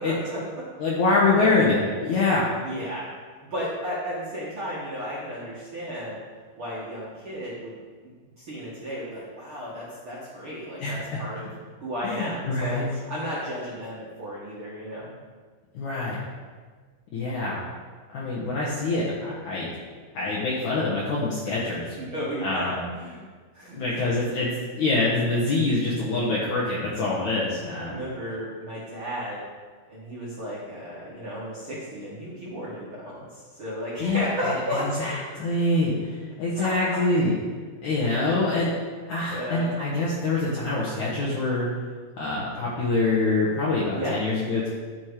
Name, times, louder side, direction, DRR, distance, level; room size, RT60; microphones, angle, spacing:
voice 1, 0.0-0.6 1.3-1.6 2.6-3.1 3.5-6.2 6.5-7.7 8.0-8.1 8.4-11.5 11.8-15.0 22.0-23.2 23.5-24.0 27.6-29.4 29.9-35.1 36.5-37.0 37.9-38.2 39.3-39.8 44.0-44.2, equal, 55° right, -8 dB, 1.4 m, -33 dB
voice 2, 0.8-2.5 10.8-11.2 12.0-12.9 15.7-16.2 17.1-17.7 18.1-19.7 20.1-21.9 22.4-22.9 23.8-24.5 24.8-28.0 34.0-37.3 37.8-38.7 39.1-41.7 42.2-44.7, left 2 dB, 70° left, -6 dB, 1.8 m, -25 dB
12.0 x 5.9 x 4.8 m, 1.5 s
omnidirectional pair, 5.4 m